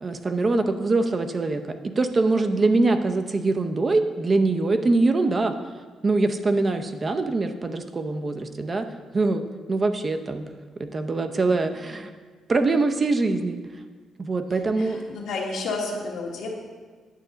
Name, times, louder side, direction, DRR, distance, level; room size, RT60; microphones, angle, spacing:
voice 1, 0.0-5.5 6.0-8.8 9.1-10.4 10.8-12.1 12.5-13.6 14.2-15.0, right 3 dB, 35° right, 7 dB, 0.6 m, -23 dB
voice 2, 14.8-16.5, left 3 dB, 80° left, -1 dB, 1.5 m, -31 dB
9.2 x 6.2 x 3.9 m, 1.4 s
cardioid pair, 90°, 0 cm